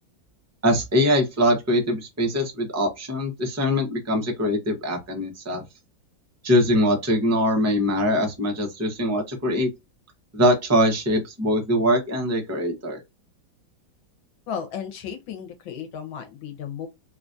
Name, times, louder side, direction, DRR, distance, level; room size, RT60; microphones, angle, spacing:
voice 1, 0.6-5.6 6.4-9.7 10.3-13.0, equal, 15° right, 0.5 m, -22 dB
voice 2, 14.5-16.9, left 7 dB, 85° left, 1.6 m, -34 dB
3.9 x 2.4 x 2.5 m
omnidirectional pair, 2.1 m